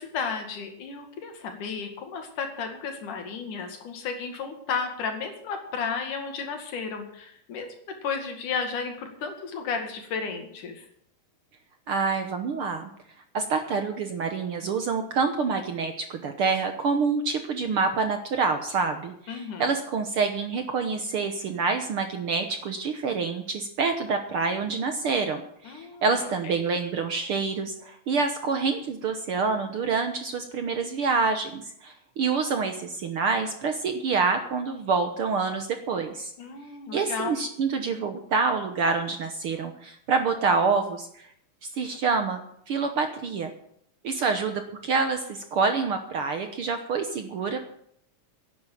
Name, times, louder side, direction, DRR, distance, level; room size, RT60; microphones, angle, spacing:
voice 1, 0.0-7.7 8.0-10.9 19.3-19.6 25.7-26.0 36.4-37.4, left 5 dB, 80° left, 5 dB, 3.6 m, -33 dB
voice 2, 11.9-12.9 13.3-36.3 36.9-41.3 41.6-42.4 42.7-43.5 44.0-47.6, right 4 dB, 60° right, 6 dB, 1.5 m, -27 dB
11.0 x 9.4 x 9.3 m, 0.70 s
omnidirectional pair, 3.6 m